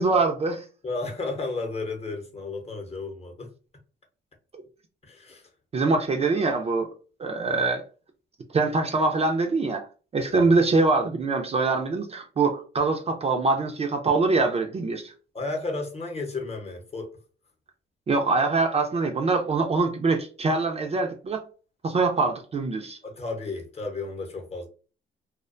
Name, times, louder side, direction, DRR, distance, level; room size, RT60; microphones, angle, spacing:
voice 1, 0.0-0.6 5.7-6.9 7.2-7.8 8.5-9.8 10.1-15.1 18.1-21.4 21.8-23.0, right 3 dB, 30° right, 0.4 m, -24 dB
voice 2, 0.8-3.5 5.0-5.5 10.3-10.6 15.3-17.1 23.0-24.7, left 3 dB, 30° left, 0.8 m, -33 dB
2.3 x 2.1 x 2.4 m
cardioid pair, 90°, 20 cm